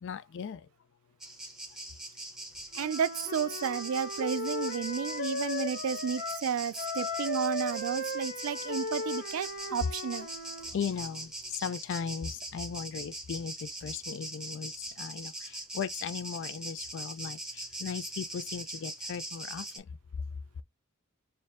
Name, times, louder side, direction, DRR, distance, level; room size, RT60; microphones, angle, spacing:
voice 1, 0.0-0.7 10.6-19.9, left 7 dB, 60° left, 0.3 m, -37 dB
sound 1, 1.2-19.8, right 1 dB, 5° right, 1.0 m, -42 dB
Wind instrument woodwind instrument, 2.7-6.5 6.7-10.7, left 2 dB, 45° left, 0.8 m, -37 dB
voice 2, 2.7-10.3, right 7 dB, 85° right, 0.4 m, -32 dB
4.3 x 2.6 x 3.5 m
head